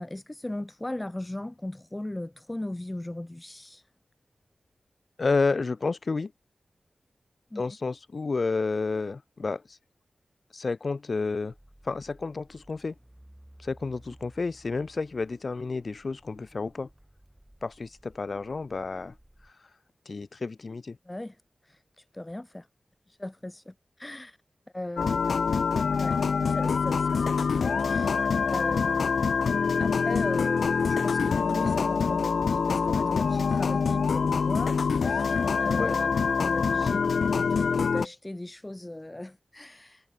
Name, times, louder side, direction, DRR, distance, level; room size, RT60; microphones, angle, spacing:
voice 1, 0.0-3.8 7.5-7.6 21.1-21.4 21.6-22.7 23.1-24.4 24.7-25.2 26.0-26.2 26.5-27.5 27.9-29.1 29.8-40.1, left 1 dB, 15° left, 0.3 m, -38 dB
voice 2, 5.2-6.3 7.5-9.8 10.5-11.5 11.8-12.9 13.6-16.9 17.6-19.1 20.1-21.0 35.8-35.9, left 4 dB, 50° left, 1.2 m, -30 dB
sound 1, 11.5-19.5, right 1 dB, 10° right, 3.5 m, -56 dB
sound 2, 25.0-38.1, left 5 dB, 85° left, 0.4 m, -25 dB
Wind instrument woodwind instrument, 30.2-33.8, right 4 dB, 50° right, 3.5 m, -53 dB
wide cardioid pair, 120°, 0 cm